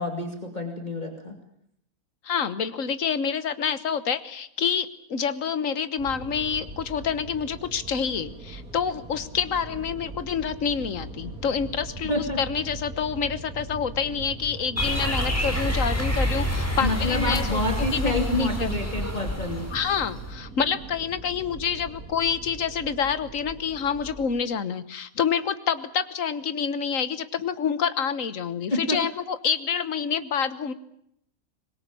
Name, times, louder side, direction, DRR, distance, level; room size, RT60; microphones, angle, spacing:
voice 1, 0.0-1.3 12.1-12.4 16.8-19.7 28.7-29.0, left 2 dB, 30° left, 3 dB, 2.9 m, -28 dB
voice 2, 2.2-18.8 19.7-30.7, left 7 dB, 65° left, 13 dB, 1.6 m, -28 dB
sound 1, 6.0-24.3, right 2 dB, 80° right, 4.1 m, -41 dB
sound 2, 14.8-20.3, equal, 10° left, 4.7 m, -27 dB
24.5 x 21.5 x 8.7 m, 0.74 s
omnidirectional pair, 1.5 m